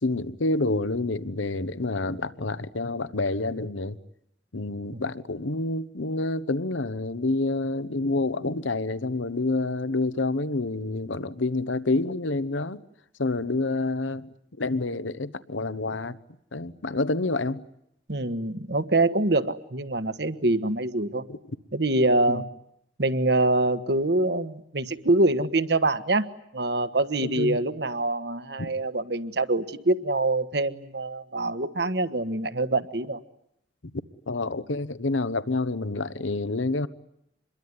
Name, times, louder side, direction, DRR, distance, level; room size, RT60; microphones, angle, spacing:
voice 1, 0.0-4.0 4.5-12.8 13.2-14.3 14.6-16.2 16.5-17.6 21.3-21.4 22.3-22.4 27.2-27.6 28.6-28.7 34.3-36.9, left 2 dB, 90° left, 1.1 m, -28 dB
voice 2, 18.1-21.2 21.7-22.4 23.0-26.3 26.5-33.2, right 2 dB, 60° right, 1.5 m, -25 dB
27.5 x 22.5 x 9.6 m
head